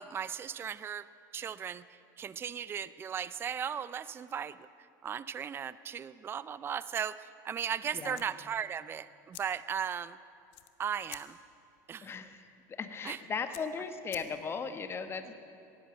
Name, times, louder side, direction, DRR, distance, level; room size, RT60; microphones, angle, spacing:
voice 1, 0.0-1.8 2.2-4.7 5.0-10.2 10.8-11.4 11.9-12.1 13.0-13.2, right 8 dB, 25° right, 16 dB, 0.4 m, -37 dB
sound 1, 8.1-14.7, left 15 dB, 65° left, 0.9 m, -54 dB
voice 2, 12.0-15.3, left 5 dB, 25° left, 9 dB, 1.1 m, -37 dB
16.5 x 11.0 x 7.7 m, 2.7 s
supercardioid pair, 105°, 10 cm